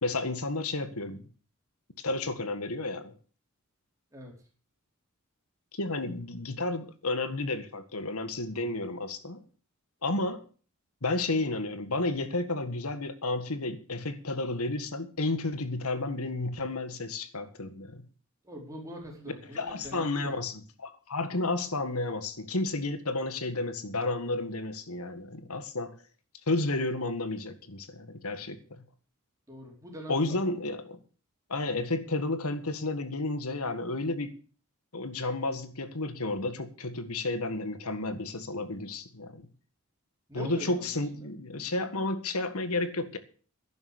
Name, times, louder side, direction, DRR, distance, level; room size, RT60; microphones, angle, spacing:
voice 1, 0.0-1.3 2.0-3.1 5.7-9.4 10.0-10.4 11.0-18.0 19.6-20.5 20.8-26.0 26.5-28.8 30.1-31.0 31.5-34.3 34.9-39.5 40.3-43.2, left 2 dB, 80° left, 1.8 m, -32 dB
voice 2, 4.1-4.5 18.4-20.4 29.5-30.7 40.3-41.3, equal, 15° right, 4.6 m, -43 dB
11.5 x 10.5 x 6.6 m
head